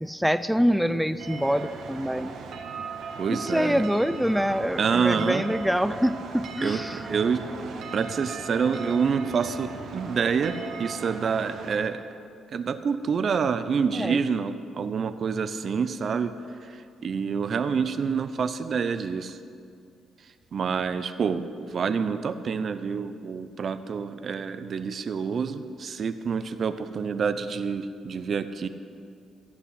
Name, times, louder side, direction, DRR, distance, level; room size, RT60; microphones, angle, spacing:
voice 1, 0.0-2.3 3.3-7.0 13.9-14.2, equal, ahead, 13 dB, 0.4 m, -25 dB
sound 1, 1.2-11.8, right 5 dB, 70° right, 1.7 m, -38 dB
voice 2, 3.2-3.8 4.8-5.4 6.6-7.5 7.9-12.1 12.5-16.3 16.7-16.8 17.0-19.4 20.5-28.7, right 6 dB, 50° right, 11 dB, 0.6 m, -27 dB
14.5 x 6.0 x 9.6 m, 2.3 s
cardioid pair, 90°, 0 cm